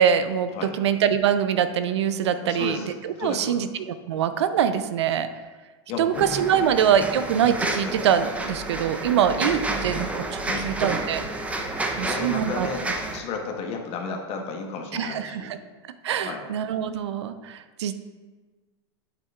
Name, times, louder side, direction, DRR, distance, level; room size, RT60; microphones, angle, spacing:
voice 1, 0.0-2.8 3.0-5.3 6.0-11.2 12.0-12.7 14.9-15.6 16.0-17.9, right 8 dB, 80° right, 11 dB, 0.5 m, -24 dB
voice 2, 2.4-2.9 3.2-3.6 5.9-6.6 7.8-7.9 10.5-10.7 11.9-15.5 16.1-16.5, left 4 dB, 45° left, 3 dB, 1.3 m, -34 dB
sound 1, 6.1-13.2, right 2 dB, 10° right, 0.7 m, -30 dB
8.1 x 7.7 x 2.4 m, 1.3 s
hypercardioid pair, 110°, 14 cm